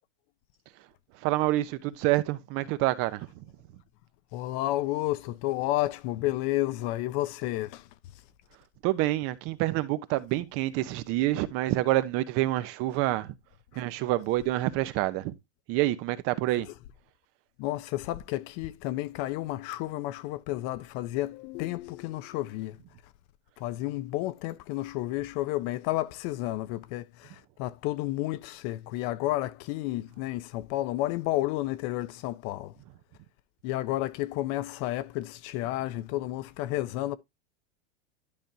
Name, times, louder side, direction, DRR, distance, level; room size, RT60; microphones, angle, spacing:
voice 1, 1.2-3.4 8.8-13.3 13.7-15.3 15.7-16.7, right 16 dB, 45° right, 0.9 m, -27 dB
voice 2, 4.3-7.9 17.6-22.8 23.6-32.7 33.6-37.2, left 16 dB, 45° left, 0.7 m, -31 dB
11.5 x 5.2 x 2.8 m
supercardioid pair, 135°, 33 cm